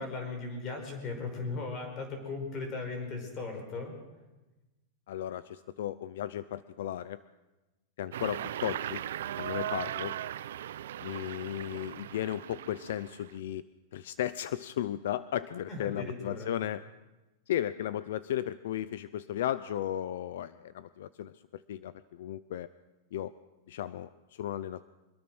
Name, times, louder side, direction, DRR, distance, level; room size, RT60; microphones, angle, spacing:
voice 1, 0.0-3.9 15.7-16.5, left 3 dB, 20° left, 4 dB, 5.1 m, -37 dB
voice 2, 5.1-7.2 8.0-9.0 9.4-10.1 11.0-13.6 13.9-16.8 17.5-22.7 23.1-23.3 23.7-24.8, left 11 dB, 60° left, 15 dB, 0.7 m, -35 dB
sound 1, 8.1-13.3, right 11 dB, 70° right, 0.8 m, -38 dB
24.5 x 21.5 x 6.2 m, 1.1 s
supercardioid pair, 175°, 0 cm